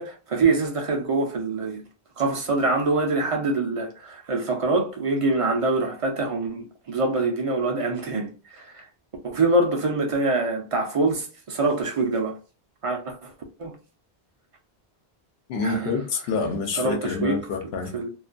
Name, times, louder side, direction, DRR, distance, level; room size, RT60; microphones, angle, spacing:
voice 1, 0.0-1.8 2.2-8.8 9.2-12.4 12.8-13.3 13.6-13.7 15.6-16.0 16.7-17.4 17.9-18.1, right 3 dB, 50° right, 0.4 m, -25 dB
voice 2, 15.5-17.9, left 4 dB, 75° left, 0.9 m, -27 dB
2.4 x 2.2 x 2.4 m
omnidirectional pair, 1.1 m